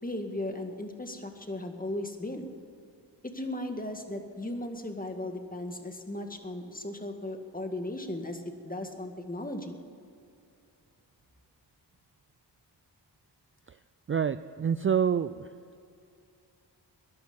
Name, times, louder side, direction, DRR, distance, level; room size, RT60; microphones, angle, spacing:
voice 1, 0.0-2.5 3.2-9.8, left 1 dB, 20° left, 5 dB, 2.0 m, -36 dB
voice 2, 14.1-15.5, right 7 dB, 30° right, 13 dB, 0.4 m, -27 dB
14.0 x 10.5 x 9.6 m, 2.5 s
cardioid pair, 60°, 43 cm